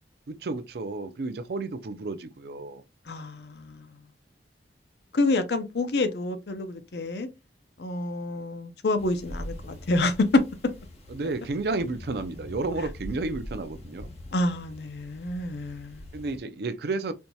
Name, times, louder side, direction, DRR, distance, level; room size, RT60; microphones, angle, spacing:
voice 1, 0.3-2.8 11.1-14.1 16.1-17.1, right 3 dB, 60° right, 0.4 m, -32 dB
voice 2, 3.1-3.9 5.1-7.3 7.8-10.4 14.3-16.0, left 2 dB, 65° left, 0.6 m, -27 dB
sound 1, 9.0-16.4, left 1 dB, 35° left, 0.9 m, -43 dB
4.4 x 2.7 x 2.2 m
head